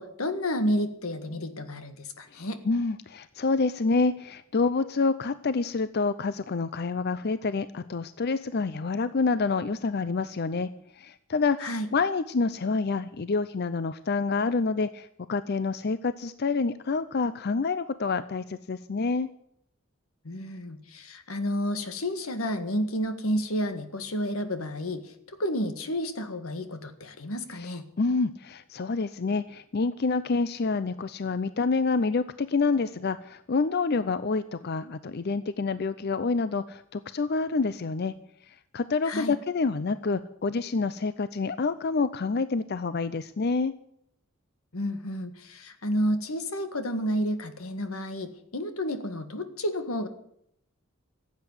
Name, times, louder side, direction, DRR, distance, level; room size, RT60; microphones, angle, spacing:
voice 1, 0.0-2.6 11.6-11.9 20.3-25.0 25.3-27.8 39.1-39.4 44.7-50.1, equal, 90° left, 9 dB, 1.7 m, -30 dB
voice 2, 2.3-10.7 11.0-19.3 27.6-27.7 28.0-38.1 38.7-43.7, left 4 dB, 50° left, 14 dB, 0.5 m, -27 dB
15.5 x 8.3 x 9.7 m, 0.74 s
head